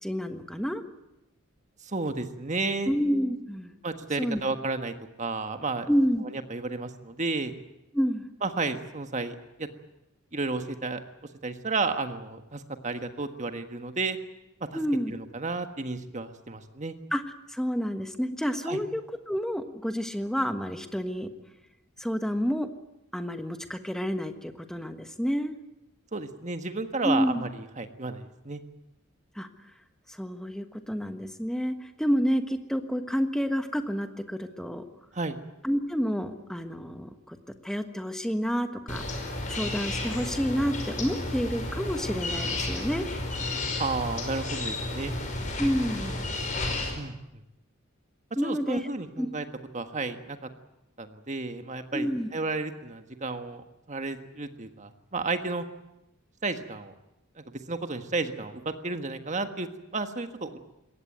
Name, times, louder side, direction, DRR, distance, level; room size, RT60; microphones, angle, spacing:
voice 1, 0.0-0.8 2.9-3.7 4.2-4.4 5.9-6.2 7.9-8.2 14.7-15.1 17.1-17.2 17.5-21.3 22.0-22.7 23.1-25.5 27.0-27.5 29.3-29.5 30.1-34.8 35.6-37.4 37.6-43.1 45.6-46.2 48.4-48.9 49.2-49.3 51.9-52.3, equal, 5° left, 7 dB, 1.4 m, -29 dB
voice 2, 1.8-2.9 3.8-5.9 6.5-7.5 8.4-9.7 10.3-11.0 11.4-14.2 14.7-14.8 15.1-16.9 18.6-18.8 26.1-27.5 27.8-28.6 35.1-35.4 43.8-45.1 46.9-47.1 48.4-49.4 49.7-50.4 51.0-52.1 52.3-55.6 56.4-56.9 57.4-60.6, right 3 dB, 35° right, 8 dB, 1.5 m, -32 dB
sound 1, 38.9-46.9, left 2 dB, 40° left, 5.0 m, -32 dB
21.5 x 17.5 x 9.3 m, 0.93 s
head